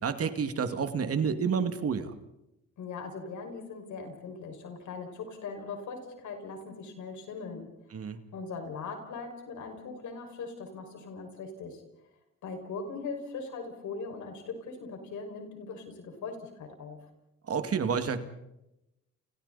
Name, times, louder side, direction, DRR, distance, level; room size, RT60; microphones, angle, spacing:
voice 1, 0.0-2.2 7.9-8.2 17.5-18.2, right 6 dB, 50° right, 8 dB, 2.2 m, -29 dB
voice 2, 2.8-7.7 8.3-11.8 12.4-17.1, left 4 dB, 75° left, 4 dB, 5.9 m, -40 dB
30.0 x 29.5 x 4.2 m, 0.90 s
cardioid pair, 90°, 30 cm